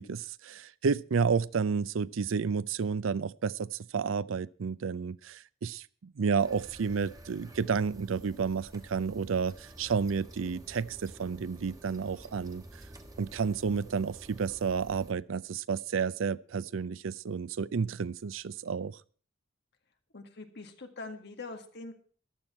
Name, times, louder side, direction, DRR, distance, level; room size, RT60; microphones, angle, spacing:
voice 1, 0.0-12.8 13.2-19.0, right 5 dB, 80° right, 19 dB, 0.5 m, -31 dB
sound 1, 6.4-15.1, right 1 dB, 20° right, 1.4 m, -50 dB
voice 2, 20.1-21.9, left 3 dB, 60° left, 5 dB, 1.9 m, -43 dB
14.5 x 11.5 x 4.3 m, 0.42 s
head